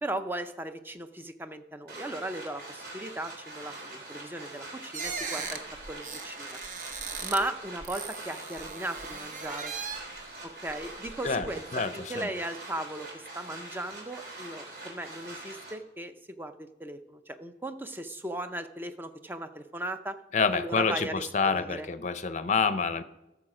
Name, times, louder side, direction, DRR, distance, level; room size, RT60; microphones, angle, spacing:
voice 1, 0.0-5.6 5.9-6.6 7.2-9.7 10.4-20.2 20.5-21.9, right 1 dB, 10° right, 9 dB, 0.5 m, -37 dB
sound 1, 1.9-15.7, right 2 dB, 60° right, 3.1 m, -44 dB
sound 2, 4.9-7.5 7.8-10.2 10.7-11.5, right 5 dB, 45° right, 0.8 m, -38 dB
voice 2, 11.7-12.3 20.3-23.0, left 5 dB, 40° left, 12 dB, 0.6 m, -27 dB
13.0 x 6.9 x 4.9 m, 0.94 s
head